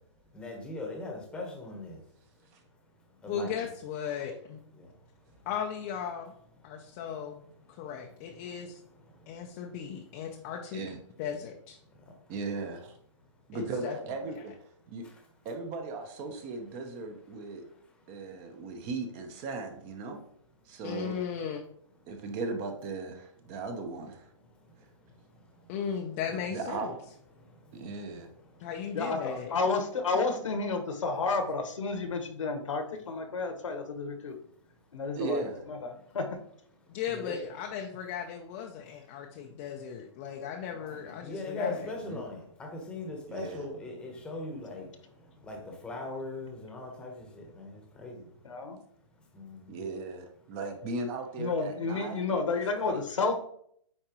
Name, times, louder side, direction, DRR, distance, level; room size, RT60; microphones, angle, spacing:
voice 1, 0.3-2.0 3.2-3.5 37.1-37.4 41.0-44.8 45.5-45.6 45.8-48.2 49.3-49.6, left 3 dB, 5° left, 1 dB, 1.1 m, -39 dB
voice 2, 3.3-4.6 5.5-6.3 6.6-7.4 7.7-8.8 9.3-10.8 11.2-11.8 13.5-14.0 14.3-14.4 20.8-21.6 25.7-26.9 28.6-29.5 36.9-41.9, left 8 dB, 25° left, 2 dB, 0.5 m, -36 dB
voice 3, 12.3-12.9 13.5-14.5 14.9-15.0 15.4-17.6 18.1-20.2 20.7-21.2 22.1-24.3 26.5-26.9 27.7-28.3 35.1-35.6 42.0-42.2 43.3-43.7 49.7-52.2 52.5-53.0, right 3 dB, 25° right, 5 dB, 0.9 m, -37 dB
voice 4, 28.9-34.3 34.9-36.2 40.8-40.9 48.4-48.8 51.4-53.4, left 4 dB, 80° left, 5 dB, 1.4 m, -31 dB
8.8 x 4.4 x 3.0 m, 0.68 s
hypercardioid pair, 155°, 16 cm